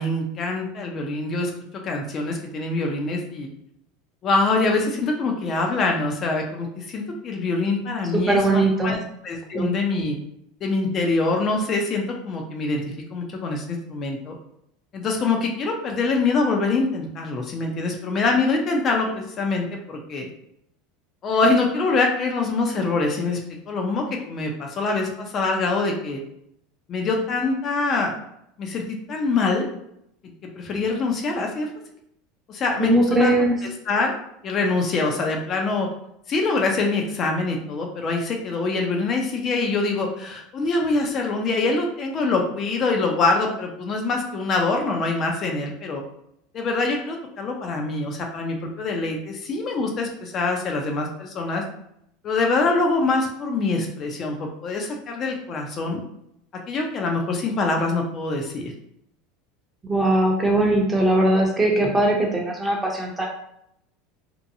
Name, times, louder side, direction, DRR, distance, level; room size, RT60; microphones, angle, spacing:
voice 1, 0.0-1.5 1.8-3.5 4.2-9.0 9.2-10.2 10.6-12.8 13.1-14.3 14.9-20.3 21.2-23.4 23.7-26.2 26.9-28.2 28.6-29.7 30.2-31.7 32.5-34.1 34.4-35.9 36.3-46.0 46.5-51.6 52.2-56.0 56.7-58.7, left 3 dB, 40° left, 2 dB, 0.5 m, -24 dB
voice 2, 8.1-8.9 9.5-9.8 32.8-33.6 59.8-63.3, right 1 dB, 15° right, 0 dB, 0.7 m, -20 dB
2.7 x 2.2 x 2.6 m, 0.76 s
supercardioid pair, 115°, 0 cm